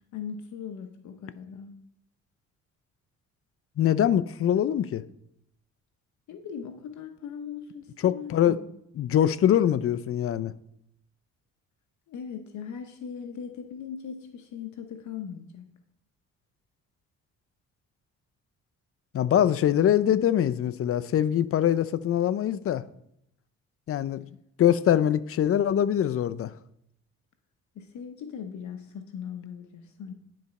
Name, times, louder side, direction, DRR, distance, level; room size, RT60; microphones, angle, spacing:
voice 1, 0.1-1.7 6.3-8.6 12.1-15.7 27.8-30.1, left 7 dB, 70° left, 0.9 m, -39 dB
voice 2, 3.8-5.0 8.0-8.6 9.0-10.5 19.1-22.8 23.9-24.2 24.6-26.5, left 10 dB, 50° left, 0.5 m, -23 dB
10.0 x 4.2 x 5.3 m
cardioid pair, 90°, 30 cm